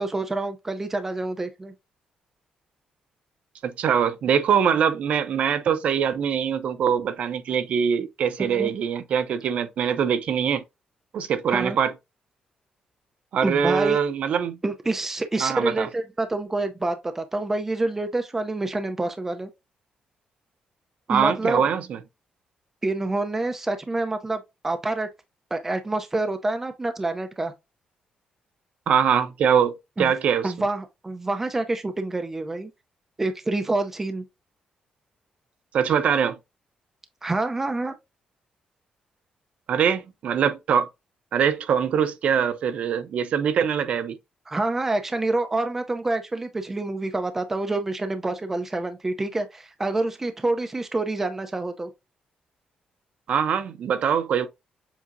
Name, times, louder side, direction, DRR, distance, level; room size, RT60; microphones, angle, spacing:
voice 1, 0.0-1.7 8.4-8.7 11.5-11.8 13.4-14.0 14.6-19.5 21.1-21.6 22.8-25.1 25.5-27.5 30.0-30.1 30.4-32.7 33.2-34.2 37.2-37.9 44.5-51.9, right 2 dB, 15° right, 0.5 m, -27 dB
voice 2, 3.6-10.6 11.1-11.9 13.3-14.6 15.4-15.9 21.1-22.0 28.9-30.5 35.7-36.4 39.7-40.9 41.3-44.2 53.3-54.5, right 7 dB, 60° right, 0.6 m, -23 dB
7.3 x 2.8 x 2.6 m
cardioid pair, 155°, 2 cm